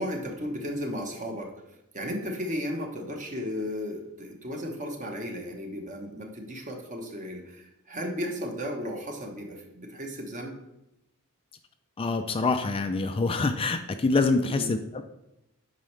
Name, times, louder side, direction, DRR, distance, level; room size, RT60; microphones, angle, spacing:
voice 1, 0.0-1.5 1.9-10.6 14.4-14.7, equal, 35° right, 3 dB, 1.2 m, -34 dB
voice 2, 12.0-15.0, left 3 dB, 25° left, 7 dB, 0.4 m, -26 dB
9.0 x 5.4 x 3.3 m, 0.87 s
head